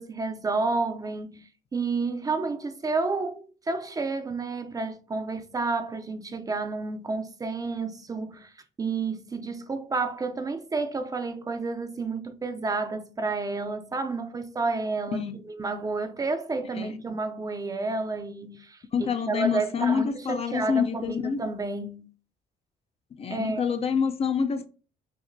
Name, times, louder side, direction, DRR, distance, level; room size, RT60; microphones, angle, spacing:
voice 1, 0.0-8.5 8.8-22.1 23.3-23.6, right 3 dB, 20° right, 0.5 m, -30 dB
voice 2, 18.9-21.4 23.2-24.7, left 6 dB, 35° left, 0.4 m, -27 dB
5.8 x 2.1 x 2.6 m
cardioid pair, 110°, 17 cm